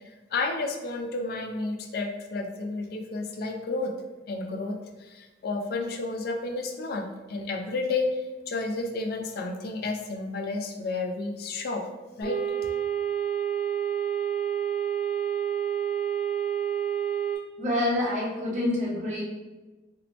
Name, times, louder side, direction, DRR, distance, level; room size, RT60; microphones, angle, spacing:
voice 1, 0.3-3.9 4.3-11.8 12.2-12.4, left 3 dB, 55° left, 4 dB, 0.3 m, -31 dB
sound 1, 12.2-17.4, right 9 dB, 10° left, 1.1 m, -28 dB
voice 2, 17.6-19.2, left 1 dB, 40° right, -4 dB, 0.7 m, -27 dB
2.7 x 2.0 x 3.0 m, 1.2 s
head